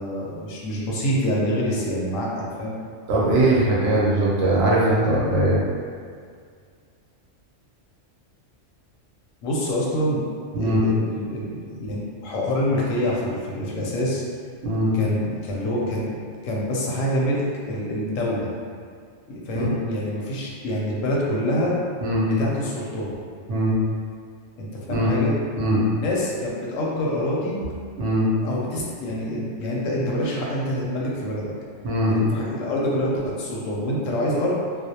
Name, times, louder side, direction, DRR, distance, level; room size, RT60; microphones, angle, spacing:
voice 1, 0.0-2.8 9.4-10.2 10.6-14.2 14.9-16.2 16.4-18.5 19.3-21.8 22.2-23.2 24.6-25.3 26.0-27.6 28.4-31.5 32.1-34.6, equal, 85° left, -4 dB, 1.0 m, -26 dB
voice 2, 3.1-5.6 10.5-10.8 14.6-14.9 19.5-19.7 22.0-22.3 23.5-23.7 24.9-25.1 25.6-25.8 28.0-28.3 31.8-32.2, right 1 dB, 70° right, -6 dB, 0.9 m, -20 dB
2.4 x 2.0 x 2.7 m, 2.1 s
omnidirectional pair, 1.3 m